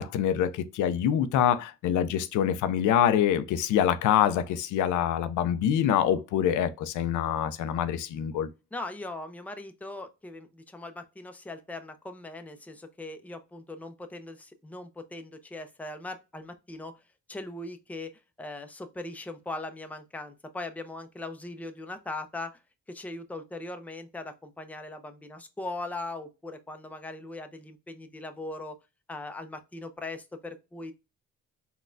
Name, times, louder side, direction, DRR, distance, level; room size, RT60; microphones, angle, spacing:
voice 1, 0.0-8.5, left 9 dB, 80° left, 0.4 m, -25 dB
voice 2, 8.7-16.9 17.3-18.1 18.4-22.5 22.9-28.7 29.1-30.9, left 2 dB, 5° left, 0.5 m, -40 dB
4.0 x 2.2 x 2.5 m
cardioid pair, 90°, 30 cm